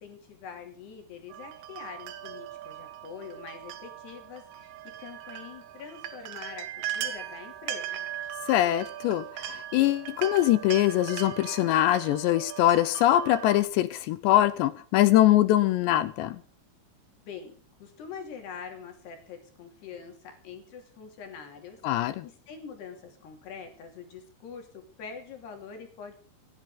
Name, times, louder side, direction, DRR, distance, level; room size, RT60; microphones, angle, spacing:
voice 1, 0.0-8.1 17.3-17.5 17.8-21.8 22.2-26.1, left 6 dB, 60° left, 4 dB, 4.6 m, -44 dB
sound 1, 1.3-13.7, right 12 dB, 90° right, 3.9 m, -39 dB
voice 2, 8.5-16.4 21.8-22.2, left 14 dB, 80° left, 14 dB, 2.7 m, -23 dB
26.5 x 10.5 x 3.8 m, 0.40 s
omnidirectional pair, 5.5 m